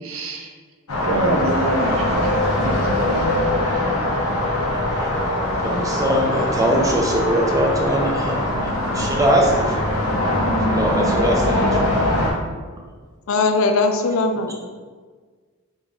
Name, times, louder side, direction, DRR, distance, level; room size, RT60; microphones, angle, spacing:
voice 1, 0.0-0.5 1.0-2.8, right 2 dB, 75° right, 2 dB, 0.6 m, -25 dB
sound 1, 0.9-12.3, left 1 dB, 90° left, 0.8 m, -22 dB
voice 2, 4.7-9.9 10.7-11.8, right 1 dB, 15° right, 0 dB, 0.4 m, -22 dB
voice 3, 13.3-14.5, left 3 dB, 70° left, 5 dB, 0.4 m, -19 dB
3.7 x 2.5 x 3.5 m, 1.5 s
head